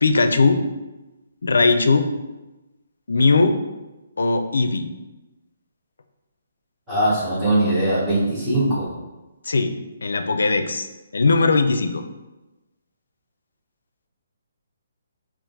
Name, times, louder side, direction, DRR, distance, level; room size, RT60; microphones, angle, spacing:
voice 1, 0.0-0.6 1.4-2.1 3.1-3.6 4.2-4.9 9.5-9.7 10.0-10.9 11.1-12.0, left 3 dB, 85° left, 8 dB, 0.4 m, -19 dB
voice 2, 6.9-8.8, right 1 dB, 5° right, -12 dB, 1.2 m, -20 dB
3.6 x 2.5 x 3.9 m, 1.1 s
hypercardioid pair, 170°, 0 cm